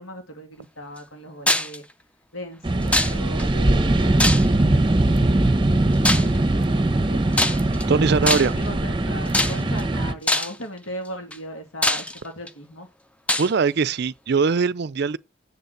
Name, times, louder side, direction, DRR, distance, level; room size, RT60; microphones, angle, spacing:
voice 1, 0.0-1.8 2.3-4.2 4.8-7.4 8.0-12.9, equal, 85° left, 2.8 m, -38 dB
sound 1, 1.5-1.8 2.9-3.4 4.2-4.7 6.0-6.4 7.3-7.8 8.3-8.7 9.3-9.8 10.3-10.6 11.3-11.4 11.8-12.5 13.3-13.5, left 1 dB, 5° left, 0.5 m, -22 dB
sound 2, 2.6-10.1, right 2 dB, 25° right, 0.9 m, -21 dB
voice 2, 7.9-8.5 13.4-15.2, right 5 dB, 55° right, 0.4 m, -21 dB
7.1 x 6.9 x 7.9 m
head